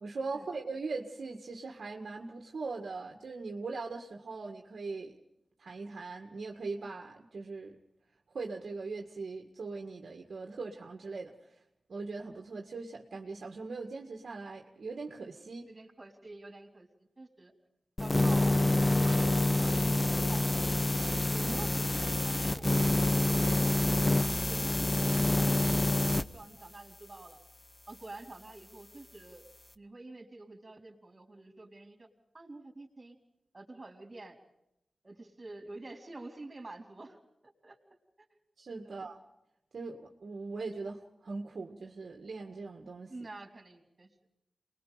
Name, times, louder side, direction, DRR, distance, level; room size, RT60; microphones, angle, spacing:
voice 1, 0.0-5.2 5.6-7.8 8.3-11.3 11.9-15.7 21.4-21.5 38.6-39.2 39.7-43.1, right 3 dB, 65° right, 2 dB, 1.9 m, -40 dB
voice 2, 15.7-17.5 18.0-20.7 21.3-24.0 24.5-27.4 27.9-29.5 29.8-32.1 32.3-33.2 33.5-34.4 35.0-37.2 37.4-37.8 38.2-38.3 38.8-39.0 43.1-44.1, right 2 dB, 30° right, 3 dB, 4.0 m, -48 dB
sound 1, 18.0-26.2, left 2 dB, 20° left, 0.8 m, -27 dB
28.5 x 21.0 x 5.1 m, 0.82 s
wide cardioid pair, 80°, 0 cm